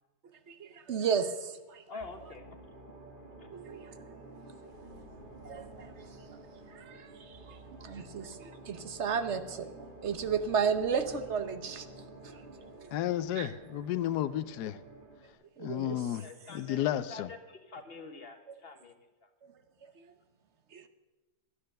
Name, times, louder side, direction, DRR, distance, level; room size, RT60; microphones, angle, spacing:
voice 1, 0.5-1.8 3.5-4.2 5.4-5.9 6.7-11.8 12.8-12.9 13.4-13.5 15.6-16.0 20.0-20.1 20.7-20.9, right 6 dB, 50° right, 9 dB, 1.0 m, -34 dB
voice 2, 1.9-2.6 2.9-3.0 3.4-3.5 16.2-18.9 19.2-19.3, left 3 dB, 40° left, 6 dB, 1.2 m, -47 dB
sound 1, 2.0-15.3, right 2 dB, 30° right, 1.8 m, -50 dB
voice 3, 12.9-14.8 15.6-17.3, left 12 dB, 80° left, 13 dB, 1.2 m, -32 dB
12.5 x 9.7 x 6.5 m, 1.2 s
omnidirectional pair, 1.7 m